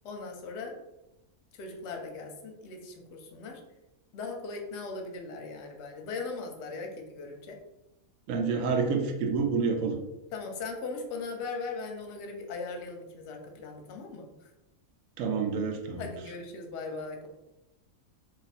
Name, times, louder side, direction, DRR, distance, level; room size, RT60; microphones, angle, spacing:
voice 1, 0.0-0.8 1.5-3.6 4.1-7.6 10.3-14.5 16.0-17.3, left 4 dB, 60° left, 3 dB, 0.8 m, -39 dB
voice 2, 8.3-10.0 15.2-16.0, right 5 dB, 70° right, 4 dB, 0.9 m, -28 dB
2.6 x 2.5 x 4.1 m, 0.94 s
omnidirectional pair, 1.5 m